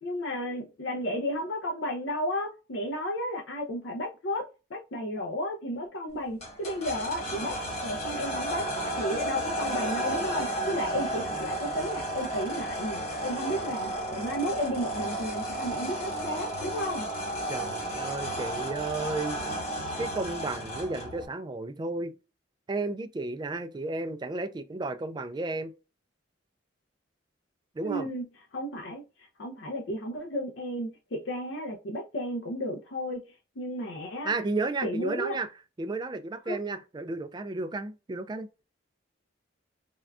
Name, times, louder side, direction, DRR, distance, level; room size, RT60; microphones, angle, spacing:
voice 1, 0.0-4.4 4.7-7.6 7.8-8.6 9.0-17.1 27.8-28.3 28.5-33.2 33.6-34.3 34.8-35.4 36.5-36.6, equal, 75° left, 0.6 m, -33 dB
sound 1, 6.4-21.2, right 1 dB, 35° left, 1.2 m, -33 dB
voice 2, 17.5-19.4 20.0-22.1 22.7-25.7 27.8-28.1 34.2-35.5 35.8-38.5, right 3 dB, 25° right, 0.3 m, -33 dB
3.5 x 2.2 x 2.3 m
head